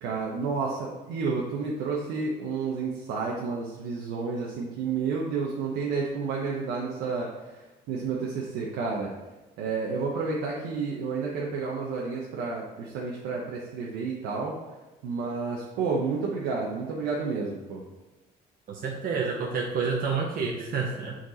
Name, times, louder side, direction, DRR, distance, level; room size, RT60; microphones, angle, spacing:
voice 1, 0.0-7.6 7.9-9.1 9.6-14.6 15.0-17.8, right 4 dB, 90° right, -3 dB, 1.0 m, -30 dB
voice 2, 18.7-21.1, right 5 dB, 60° right, -1 dB, 0.9 m, -29 dB
6.4 x 4.5 x 4.1 m, 1.1 s
cardioid pair, 110°, 17 cm